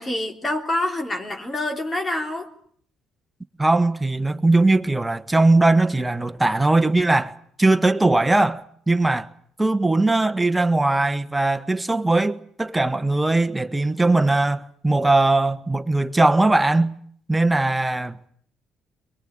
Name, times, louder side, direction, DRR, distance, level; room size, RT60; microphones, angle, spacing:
voice 1, 0.0-2.5, left 1 dB, 25° left, 3.6 m, -26 dB
voice 2, 3.6-7.3 7.6-9.3 9.6-16.9 17.3-18.2, right 2 dB, 10° right, 1.5 m, -20 dB
23.0 x 21.5 x 9.1 m
supercardioid pair, 70°, 0 cm